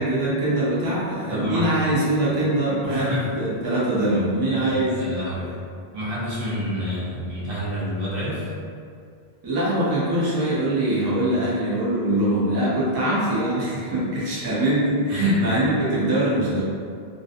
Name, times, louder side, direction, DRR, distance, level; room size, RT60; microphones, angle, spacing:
voice 1, 0.0-5.0 9.4-16.6, right 1 dB, 30° right, -8 dB, 0.5 m, -23 dB
voice 2, 1.3-1.7 2.8-3.2 4.5-5.5 5.9-8.4 15.1-15.2, equal, 65° right, -8 dB, 0.9 m, -29 dB
2.6 x 2.1 x 2.5 m, 2.3 s
omnidirectional pair, 1.1 m